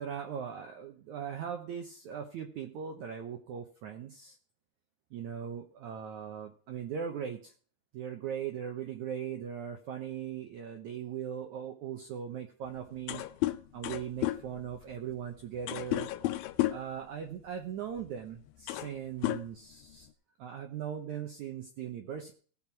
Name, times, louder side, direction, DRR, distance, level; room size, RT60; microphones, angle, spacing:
voice 1, 0.0-4.4 5.1-7.5 7.9-13.2 13.7-16.1 16.7-20.1 20.4-22.3, right 8 dB, 70° right, 3 dB, 1.9 m, -39 dB
sound 1, 12.7-12.8 13.0-17.0 18.0-18.1 18.5-19.0 19.2-20.1, left 16 dB, 80° left, 2.2 m, -33 dB
18.0 x 6.1 x 4.6 m, 0.43 s
omnidirectional pair, 4.4 m